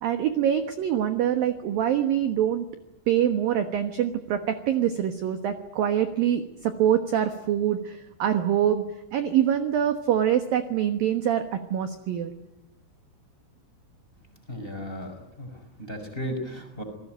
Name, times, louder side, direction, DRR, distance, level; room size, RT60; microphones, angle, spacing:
voice 1, 0.0-2.7 3.1-8.8 9.1-12.3, right 10 dB, 65° right, 8 dB, 2.4 m, -25 dB
voice 2, 14.5-16.8, equal, 10° left, 5 dB, 5.0 m, -35 dB
28.5 x 20.5 x 9.2 m, 0.88 s
omnidirectional pair, 5.8 m